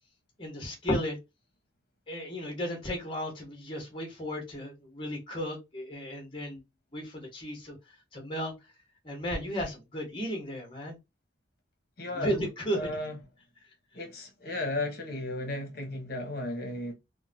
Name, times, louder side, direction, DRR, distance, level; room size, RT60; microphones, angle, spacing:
voice 1, 0.4-1.2 2.1-6.6 6.9-7.7 8.1-8.5 9.0-11.0 12.1-12.9, equal, 25° left, 1.3 m, -34 dB
voice 2, 12.0-12.4 12.7-13.1 13.9-16.9, left 2 dB, 50° left, 1.1 m, -34 dB
3.6 x 2.3 x 2.7 m
head